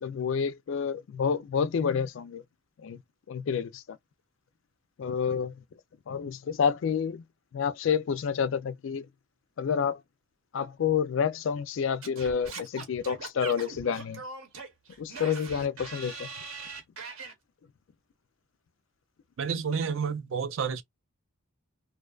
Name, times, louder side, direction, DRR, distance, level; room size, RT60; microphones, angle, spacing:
voice 1, 0.0-2.4 2.8-3.0 3.3-4.0 5.0-5.6 6.1-7.2 7.5-9.1 9.6-10.0 10.5-14.2 15.0-16.3, left 7 dB, 60° left, 0.3 m, -29 dB
Singing / Scratching (performance technique), 12.0-17.3, right 4 dB, 80° right, 0.9 m, -41 dB
voice 2, 19.4-20.8, right 6 dB, 65° right, 0.4 m, -30 dB
2.5 x 2.2 x 2.3 m
head